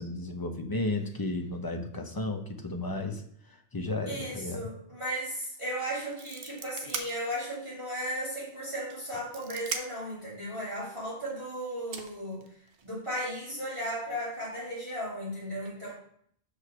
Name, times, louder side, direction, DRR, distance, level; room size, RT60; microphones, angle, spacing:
voice 1, 0.0-3.2 3.5-4.7, left 2 dB, 20° left, 4 dB, 0.9 m, -33 dB
voice 2, 4.1-12.5 12.8-15.9, equal, 25° right, -8 dB, 2.9 m, -35 dB
sound 1, 5.4-5.6 5.9-7.7 8.1-8.2 8.9-10.1 11.3-11.4 11.9-12.9, right 5 dB, 75° right, 1.1 m, -39 dB
6.4 x 5.1 x 6.1 m, 0.64 s
omnidirectional pair, 1.1 m